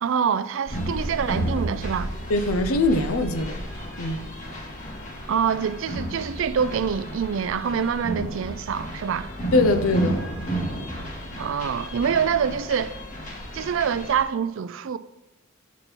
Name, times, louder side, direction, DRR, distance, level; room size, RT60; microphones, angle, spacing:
voice 1, 0.0-2.1 5.3-9.3 11.4-12.9 13.5-15.0, right 7 dB, 65° right, 0.4 m, -25 dB
sound 1, 0.7-14.2, right 1 dB, 35° left, 1.4 m, -32 dB
voice 2, 2.3-3.7 4.0-4.3 9.5-10.2, left 2 dB, 85° left, 0.6 m, -22 dB
7.1 x 4.4 x 5.3 m
head